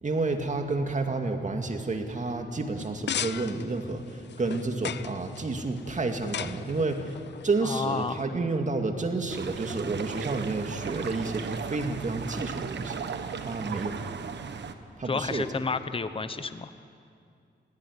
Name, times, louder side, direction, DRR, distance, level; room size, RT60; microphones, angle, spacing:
voice 1, 0.0-7.2 7.4-13.0 13.4-14.0 15.0-15.4, right 3 dB, 40° right, 5 dB, 2.2 m, -30 dB
sound 1, 2.8-8.3, left 9 dB, 70° left, 0.7 m, -38 dB
voice 2, 7.6-8.2 15.0-16.7, left 4 dB, 30° left, 11 dB, 1.0 m, -31 dB
sound 2, 9.3-14.7, right 6 dB, 70° right, 1.3 m, -36 dB
20.5 x 17.0 x 9.8 m, 2.3 s
cardioid pair, 75°, 19 cm